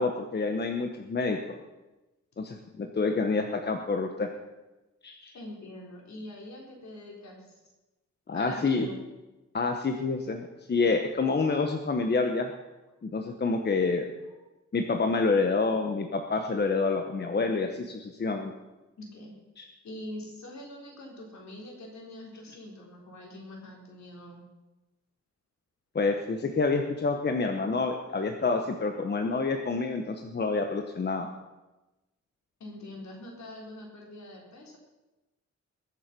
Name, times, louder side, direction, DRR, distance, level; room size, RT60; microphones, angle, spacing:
voice 1, 0.0-1.4 2.4-4.3 5.0-5.3 8.3-8.9 9.5-12.5 13.0-14.0 14.7-18.5 19.6-19.7 25.9-31.3, left 4 dB, 35° left, 4 dB, 1.0 m, -28 dB
voice 2, 5.3-7.6 8.3-9.0 14.3-14.4 19.0-19.3 19.8-24.4 32.6-34.8, left 1 dB, 65° left, -1 dB, 3.9 m, -44 dB
22.0 x 7.3 x 6.0 m, 1.1 s
wide cardioid pair, 155°, 30 cm